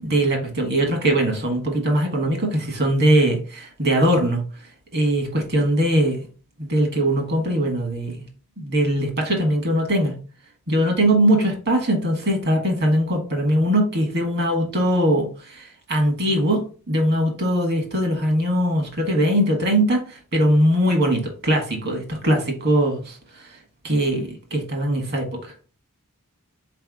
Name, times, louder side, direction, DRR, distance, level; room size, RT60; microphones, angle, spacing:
voice 1, 0.0-4.4 4.9-6.3 6.6-8.2 8.6-10.2 10.7-23.2 23.8-25.5, right 1 dB, 50° right, 1.5 m, -21 dB
4.2 x 3.4 x 3.6 m
head